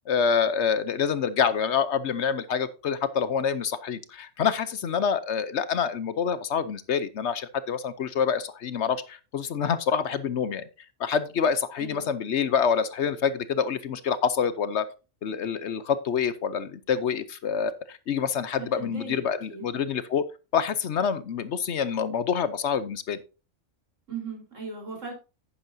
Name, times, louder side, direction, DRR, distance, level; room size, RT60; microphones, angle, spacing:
voice 1, 0.1-10.6 11.0-14.9 15.2-20.2 20.5-23.2, left 7 dB, 65° left, 14 dB, 1.0 m, -27 dB
voice 2, 11.8-12.1 18.5-19.2 19.5-19.7 24.1-25.1, right 4 dB, 70° right, 1 dB, 4.5 m, -37 dB
10.5 x 9.8 x 2.7 m, 0.31 s
omnidirectional pair, 1.3 m